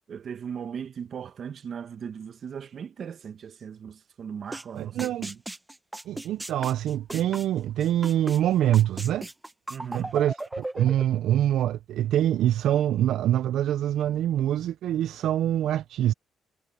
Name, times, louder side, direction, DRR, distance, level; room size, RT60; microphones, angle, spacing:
voice 1, 0.1-5.4 9.7-10.1, right 7 dB, 55° right, 1.3 m, -38 dB
sound 1, 4.5-4.6 5.0-8.4 8.7-11.0, right 1 dB, 10° right, 0.8 m, -36 dB
voice 2, 4.7-5.3 6.1-9.3 9.9-16.1, right 12 dB, 80° right, 0.4 m, -25 dB
cardioid pair, 90°, 0 cm